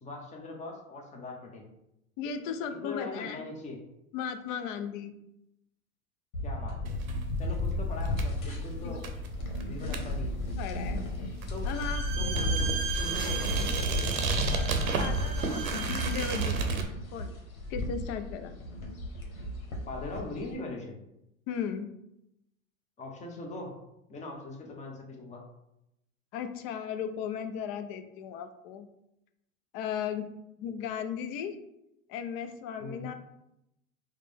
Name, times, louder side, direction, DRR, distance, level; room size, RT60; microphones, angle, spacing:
voice 1, 0.0-1.6 2.8-3.8 6.4-7.0 7.4-9.0 9.6-10.4 11.5-11.7 12.2-14.0 14.7-15.0 19.9-21.0 23.0-23.7 24.1-25.4 32.8-33.1, left 2 dB, 15° left, 0 dB, 0.8 m, -41 dB
voice 2, 2.2-3.4 4.1-5.1 8.8-9.0 10.6-11.0 11.6-12.5 14.2-14.3 15.0-16.9 17.1-17.4 17.7-18.5 21.5-21.9 26.3-28.9 29.7-30.3 30.6-31.6 32.1-33.1, left 7 dB, 40° left, 8 dB, 0.5 m, -36 dB
sound 1, 6.3-20.5, left 1 dB, 80° left, 1.1 m, -34 dB
sound 2, 6.9-16.8, right 5 dB, 85° right, 0.8 m, -34 dB
Bowed string instrument, 11.7-16.6, right 6 dB, 30° right, 0.7 m, -37 dB
4.9 x 2.2 x 3.3 m, 0.85 s
hypercardioid pair, 105°, 41 cm